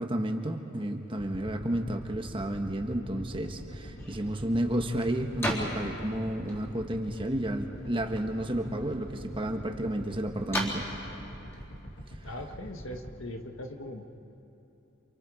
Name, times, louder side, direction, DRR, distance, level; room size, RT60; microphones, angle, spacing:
voice 1, 0.0-10.9, right 1 dB, 25° right, 4 dB, 1.4 m, -31 dB
sound 1, 1.2-13.1, equal, 55° left, 2.3 m, -44 dB
sound 2, 3.8-12.9, equal, 15° left, 3.8 m, -40 dB
voice 2, 12.2-14.1, left 1 dB, 80° left, 4 dB, 1.7 m, -40 dB
28.5 x 27.5 x 5.0 m, 2.9 s
head